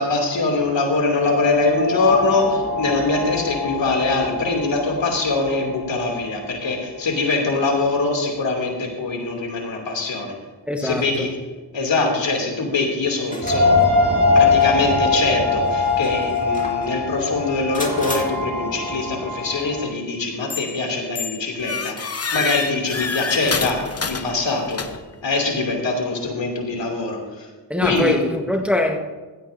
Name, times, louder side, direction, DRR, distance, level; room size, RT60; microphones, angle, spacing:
voice 1, 0.0-10.3 10.8-11.3 11.7-13.8 14.3-24.8 25.2-27.5 27.8-28.2, left 3 dB, 80° left, 2.8 m, -23 dB
sound 1, 1.1-6.7 7.0-7.1 13.4-19.8, left 3 dB, 60° right, 4.0 m, -22 dB
voice 2, 10.7-11.3 27.7-29.0, left 1 dB, 5° right, 1.3 m, -22 dB
Metallic Clanking, 13.2-13.9 14.6-14.7 15.7-16.9 17.7-18.2, left 1 dB, 15° left, 2.3 m, -33 dB
sound 2, 20.5-20.8 21.2-25.2, left 5 dB, 35° left, 0.9 m, -28 dB
15.5 x 15.0 x 2.7 m
cardioid pair, 60°, 44 cm